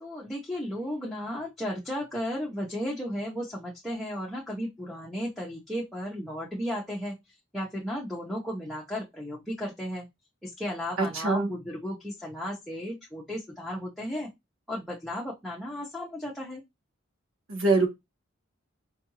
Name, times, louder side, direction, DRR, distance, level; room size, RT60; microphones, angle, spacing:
voice 1, 0.0-10.1 10.4-14.3 14.7-16.6, equal, ahead, 0.7 m, -34 dB
voice 2, 11.0-11.5 17.5-17.9, right 3 dB, 90° right, 1.4 m, -24 dB
4.6 x 2.5 x 2.9 m
head